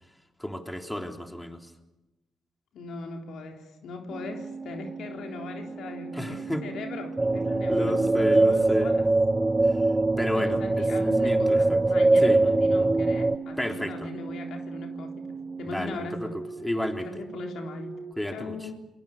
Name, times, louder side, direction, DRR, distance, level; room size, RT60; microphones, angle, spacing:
voice 1, 0.4-1.7 6.1-6.6 7.7-8.9 9.6-9.8 10.2-11.8 12.2-12.5 13.6-14.1 15.7-16.3 16.6-17.1 18.2-18.7, left 1 dB, 10° left, 3.5 m, -31 dB
voice 2, 2.7-9.1 10.3-16.4 17.0-18.0 18.3-18.9, left 4 dB, 70° left, 3.8 m, -40 dB
sound 1, 4.1-18.1, right 5 dB, 40° right, 1.4 m, -38 dB
sound 2, 7.2-13.4, right 2 dB, 20° right, 1.0 m, -22 dB
27.0 x 22.0 x 7.3 m
supercardioid pair, 55°, 0 cm